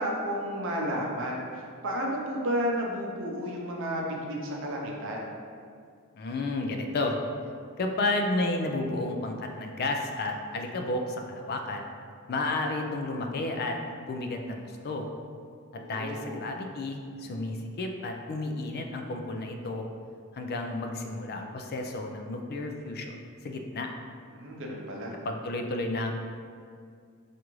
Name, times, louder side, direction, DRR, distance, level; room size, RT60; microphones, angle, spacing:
voice 1, 0.0-5.3 15.8-16.4 24.3-25.1, equal, 65° right, -1 dB, 0.6 m, -32 dB
voice 2, 6.1-7.2 7.8-11.9 12.3-15.1 15.7-19.9 20.3-23.2 23.4-23.9 25.2-26.1, left 2 dB, 50° left, 3 dB, 0.4 m, -32 dB
4.7 x 2.5 x 3.0 m, 2.2 s
head